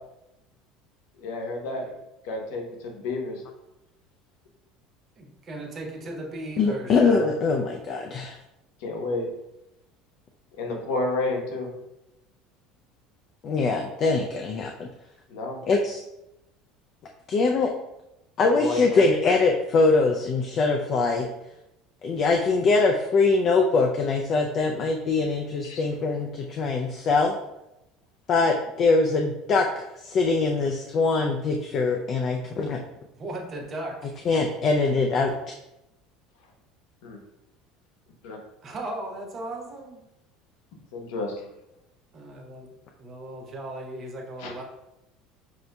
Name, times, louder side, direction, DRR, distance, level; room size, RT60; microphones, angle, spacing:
voice 1, 1.2-1.9 2.2-3.4 8.8-9.3 10.6-11.7 15.3-15.6 18.6-19.1 25.6-25.8 37.0-37.2 38.2-38.4 40.9-41.5 44.4-44.5, left 2 dB, 85° left, 1 dB, 0.9 m, -30 dB
voice 2, 5.2-7.3 33.1-34.3 38.6-40.1 42.1-42.7 43.0-44.6, right 1 dB, 30° right, 1 dB, 0.7 m, -37 dB
voice 3, 6.6-8.4 13.4-14.9 15.7-16.0 17.3-17.7 18.4-21.3 22.0-27.4 28.3-32.8 34.3-35.5, left 3 dB, 35° left, 2 dB, 0.3 m, -23 dB
6.0 x 2.7 x 2.2 m, 0.90 s
cardioid pair, 155°, 0 cm